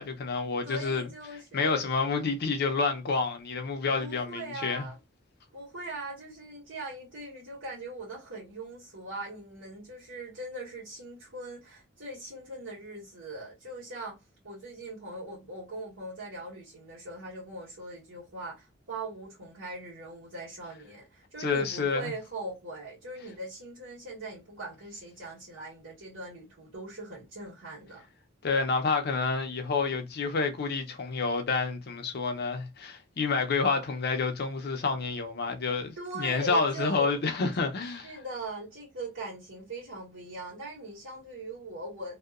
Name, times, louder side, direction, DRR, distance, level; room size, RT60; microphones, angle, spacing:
voice 1, 0.0-1.0 1.5-4.9 21.4-22.1 28.4-38.1, left 4 dB, 55° left, 0.5 m, -29 dB
voice 2, 0.6-1.9 4.0-5.0 5.5-14.2 14.4-28.0 36.0-37.2 38.0-42.2, right 2 dB, 85° right, 1.4 m, -40 dB
2.7 x 2.1 x 2.3 m
head